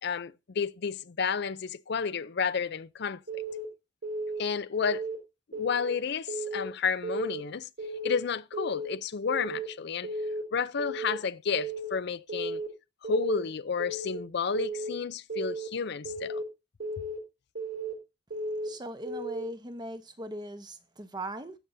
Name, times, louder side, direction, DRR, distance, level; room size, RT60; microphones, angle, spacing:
voice 1, 0.0-3.4 4.4-5.1 5.5-7.7 8.0-10.1 10.5-12.6 13.0-16.4, left 6 dB, 60° left, 0.5 m, -31 dB
Keyboard (musical) / Alarm, 3.3-3.6 4.0-4.4 4.8-5.1 5.5-5.9 6.3-6.7 7.0-7.4 7.8-8.2 8.5-8.9 9.3-9.7 10.0-10.4 10.8-11.2 11.5-11.9 12.3-12.7 13.0-13.4 13.8-14.2 14.5-14.9 15.3-15.7 16.0-16.4 16.8-17.2 17.5-17.9 18.3-18.7 19.0-19.4, right 2 dB, 70° right, 3.7 m, -34 dB
voice 2, 18.6-21.6, right 1 dB, 20° right, 0.9 m, -39 dB
18.0 x 7.0 x 2.7 m
head